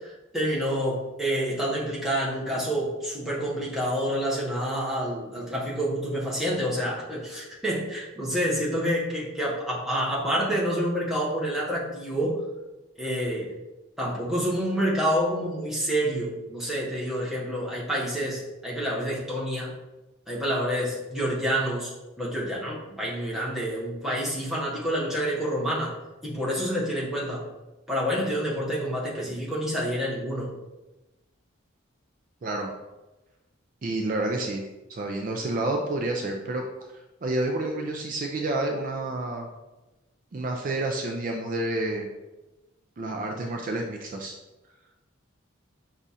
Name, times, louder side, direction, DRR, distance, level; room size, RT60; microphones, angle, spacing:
voice 1, 0.0-12.4 13.0-13.5 14.0-19.7 20.3-21.9 22.2-26.0 26.2-27.4 27.9-30.5, equal, ahead, -6 dB, 0.9 m, -28 dB
voice 2, 33.8-34.6 34.9-36.6 37.2-39.5 40.3-42.1 43.0-44.3, right 2 dB, 40° right, 2 dB, 0.4 m, -29 dB
5.0 x 2.4 x 4.1 m, 1.1 s
head